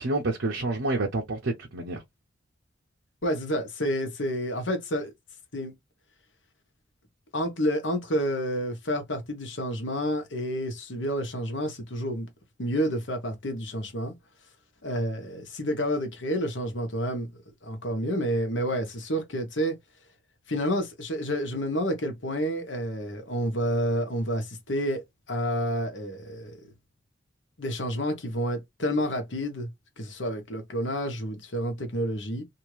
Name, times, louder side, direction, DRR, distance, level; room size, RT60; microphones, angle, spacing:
voice 1, 0.0-2.0, right 2 dB, 90° right, 0.8 m, -28 dB
voice 2, 3.2-5.1 5.5-5.7 7.3-12.3 12.6-14.1 14.8-17.3 17.6-19.8 20.5-25.0 25.3-26.5 27.6-29.7 30.0-32.4, equal, 75° left, 1.2 m, -29 dB
2.8 x 2.7 x 3.1 m
head